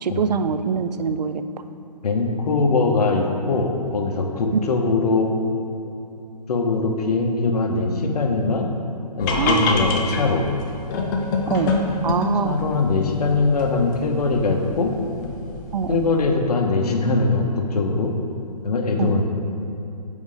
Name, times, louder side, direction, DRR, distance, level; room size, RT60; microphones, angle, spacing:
voice 1, 0.0-1.4 9.3-9.7 11.5-11.7 12.0-12.6 15.7-16.1 19.0-19.1, right 6 dB, 80° right, 10 dB, 0.5 m, -23 dB
voice 2, 2.0-5.3 6.5-8.7 9.2-10.4 12.4-14.9 15.9-18.1 18.6-19.3, left 3 dB, 70° left, 3 dB, 1.0 m, -21 dB
sound 1, 9.2-16.2, left 3 dB, 30° left, 0.7 m, -27 dB
5.4 x 5.0 x 5.0 m, 2.8 s
hypercardioid pair, 140°, 21 cm